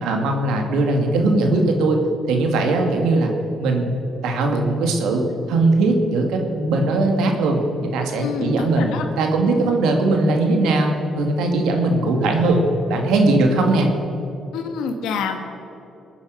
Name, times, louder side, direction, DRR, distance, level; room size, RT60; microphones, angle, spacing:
voice 1, 0.0-2.0 2.3-3.3 3.6-3.9 4.2-8.9 9.2-12.6 12.9-13.9, right 2 dB, 90° right, 3 dB, 2.2 m, -19 dB
voice 2, 8.2-9.1 14.5-15.4, left 5 dB, 90° left, 5 dB, 1.8 m, -26 dB
22.0 x 9.5 x 6.5 m, 2.9 s
cardioid pair, 90°, 0 cm